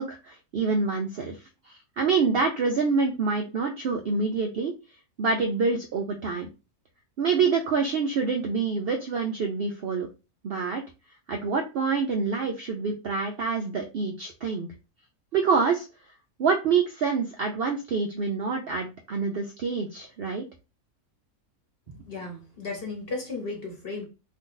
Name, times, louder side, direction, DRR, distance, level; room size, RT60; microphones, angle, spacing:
voice 1, 0.0-1.4 1.7-4.7 5.2-6.5 7.2-10.1 10.4-10.8 11.3-14.7 15.3-15.9 16.4-20.5, right 4 dB, 85° right, 0.5 m, -26 dB
voice 2, 22.1-24.0, left 3 dB, 45° left, 0.9 m, -34 dB
2.7 x 2.5 x 3.7 m
omnidirectional pair, 1.6 m